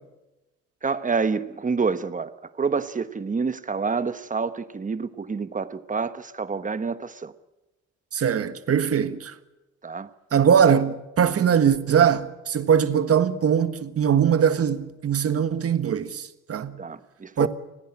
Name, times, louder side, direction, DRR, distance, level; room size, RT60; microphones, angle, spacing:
voice 1, 0.8-2.3 2.6-7.3 9.8-10.1 16.8-17.5, right 5 dB, 25° right, 1.2 m, -27 dB
voice 2, 8.1-9.3 10.3-16.8 17.4-17.5, right 8 dB, 50° right, 1.6 m, -21 dB
29.5 x 10.5 x 9.8 m
cardioid pair, 90°, 30 cm